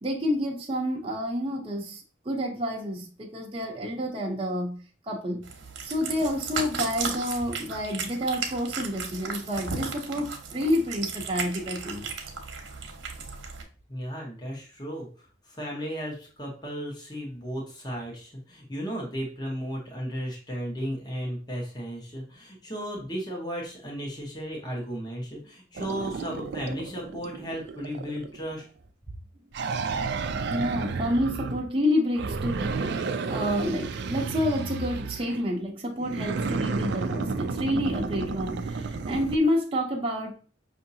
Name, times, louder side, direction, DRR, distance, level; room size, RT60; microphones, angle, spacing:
voice 1, 0.0-4.8 5.1-5.4 5.8-12.1 30.5-32.8 33.3-40.4, left 1 dB, 30° right, 0.8 m, -29 dB
Cat, 5.4-13.6, right 5 dB, 85° right, 0.9 m, -35 dB
voice 2, 13.9-28.7, equal, 25° left, 1.1 m, -35 dB
sound 1, 25.8-28.6 29.5-31.7 32.2-35.5 36.0-39.4, right 4 dB, 65° right, 0.4 m, -32 dB
5.7 x 2.7 x 2.7 m
head